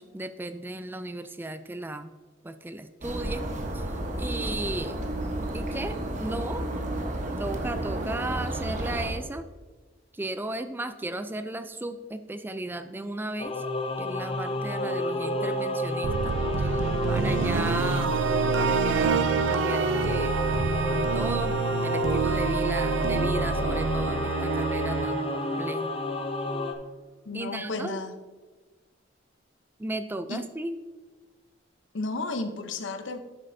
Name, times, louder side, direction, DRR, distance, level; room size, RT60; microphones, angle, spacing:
voice 1, 0.0-2.1 2.4-3.5 3.7-5.0 5.5-6.7 7.4-9.5 10.1-13.6 14.0-18.1 18.6-20.3 20.9-25.9 27.3-28.0 29.8-30.8, right 2 dB, 10° right, 10 dB, 0.3 m, -35 dB
sound 1, 3.0-9.1, right 1 dB, 40° right, 1.1 m, -32 dB
Singing / Musical instrument, 13.4-26.7, left 1 dB, 30° left, 0.7 m, -30 dB
sound 2, 16.0-26.2, right 5 dB, 80° right, 0.4 m, -27 dB
voice 2, 27.2-28.2 30.3-30.5 31.9-33.2, left 3 dB, 80° left, 9 dB, 0.7 m, -33 dB
10.5 x 7.5 x 2.7 m, 1.3 s
head